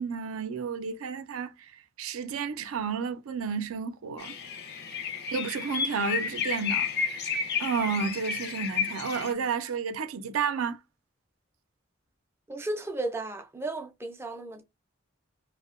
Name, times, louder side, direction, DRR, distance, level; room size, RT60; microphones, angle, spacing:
voice 1, 0.0-1.7 2.0-4.4 5.3-10.8, right 5 dB, 85° right, 0.4 m, -32 dB
sound 1, 4.2-9.3, left 6 dB, 50° left, 0.5 m, -31 dB
voice 2, 12.5-14.6, right 2 dB, 10° right, 0.3 m, -34 dB
2.7 x 2.1 x 2.4 m
head